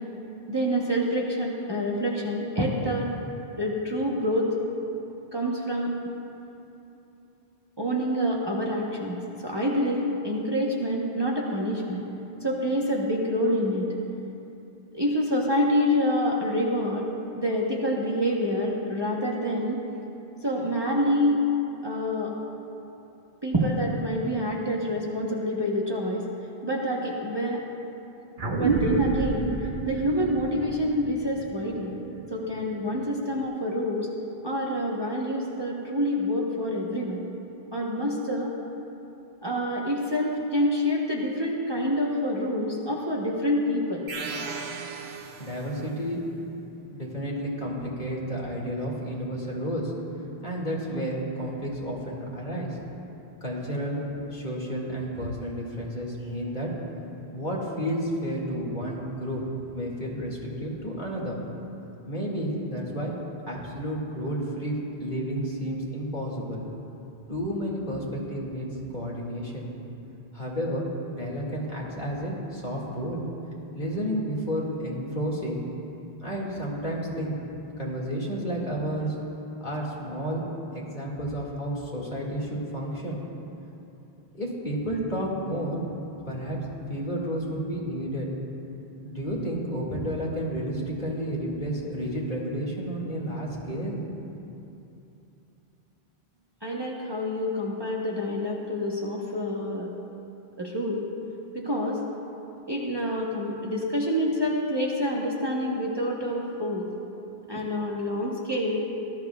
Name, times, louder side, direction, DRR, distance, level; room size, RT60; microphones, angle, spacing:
voice 1, 0.5-3.1 3.6-4.6 5.3-5.9 7.8-12.0 12.4-13.9 14.9-17.1 17.4-19.8 20.4-21.4 21.8-22.3 23.4-26.3 26.6-27.6 28.5-29.5 29.8-31.9 32.3-34.1 34.4-37.2 37.7-38.5 39.4-44.1 96.6-99.9 100.6-101.1 101.5-102.0 102.7-106.9 107.5-108.9, equal, 25° right, -4 dB, 1.0 m, -27 dB
sound 1, 28.4-33.3, right 4 dB, 55° right, 1.2 m, -29 dB
sound 2, 44.1-46.0, right 4 dB, 90° right, 1.0 m, -37 dB
voice 2, 45.4-46.2 46.9-49.9 50.4-52.8 53.4-54.0 54.3-56.7 57.3-59.4 59.7-61.4 62.1-63.1 63.5-66.6 67.3-69.7 70.3-73.2 73.7-75.7 76.2-77.4 77.8-79.2 79.6-80.5 80.7-83.2 84.3-85.8 86.3-86.6 86.9-88.3 89.0-94.0, equal, 50° left, -5 dB, 2.3 m, -31 dB
19.0 x 13.0 x 2.3 m, 2.8 s
omnidirectional pair, 1.0 m